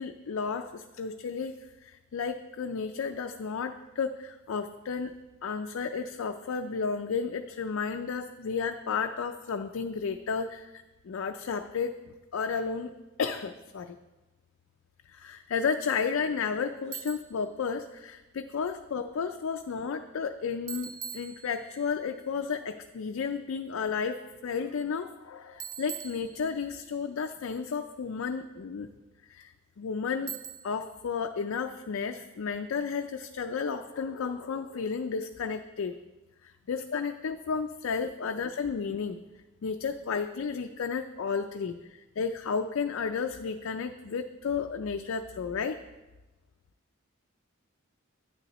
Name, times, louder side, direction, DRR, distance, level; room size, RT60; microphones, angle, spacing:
voice 1, 0.0-1.5 1.8-10.7 11.0-12.0 12.3-12.9 13.2-14.0 15.1-28.9 29.3-29.5 29.8-30.4 30.6-36.0 36.4-39.2 39.6-45.8, left 5 dB, 80° left, 7 dB, 0.4 m, -32 dB
Bicycle, 16.9-17.4 20.7-21.9 25.6-26.9 30.3-30.9, right 8 dB, 40° right, 0.6 m, -42 dB
9.8 x 9.7 x 3.0 m, 1.1 s
head